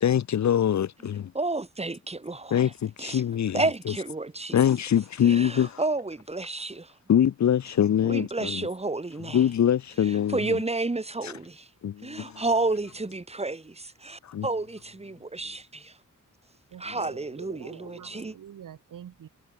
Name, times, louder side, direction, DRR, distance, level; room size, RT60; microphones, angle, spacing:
voice 1, 0.0-1.3 2.5-3.6 4.5-5.8 7.1-8.7 9.3-10.6 11.8-12.4 14.2-14.5, left 9 dB, 60° left, 0.5 m, -24 dB
voice 2, 1.3-2.7 3.0-3.2 3.5-4.6 5.2-6.9 8.0-9.4 10.0-11.7 12.0-16.0 16.8-18.3, right 2 dB, 20° right, 1.3 m, -31 dB
voice 3, 16.7-19.3, right 9 dB, 80° right, 0.8 m, -45 dB
wide cardioid pair, 85°, 32 cm